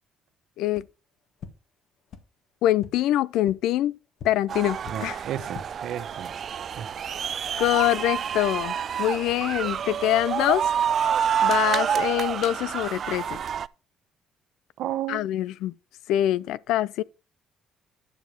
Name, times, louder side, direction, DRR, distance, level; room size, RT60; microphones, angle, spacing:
sound 1, 0.7-0.8 1.4-1.5 2.1-2.2 2.8-2.9 3.4-3.5 4.2-4.3 4.8-4.9 5.4-5.6, left 7 dB, 60° left, 1.7 m, -40 dB
voice 1, 2.6-3.9 4.2-5.2 7.6-10.7 11.4-13.4 15.1-15.7 16.1-17.0, left 13 dB, 80° left, 0.4 m, -24 dB
sound 2, 4.5-13.7, right 8 dB, 50° right, 0.4 m, -28 dB
voice 2, 4.8-6.3 6.8-7.0 14.8-15.2, right 11 dB, 70° right, 1.4 m, -33 dB
10.0 x 5.2 x 5.0 m
cardioid pair, 100°, 0 cm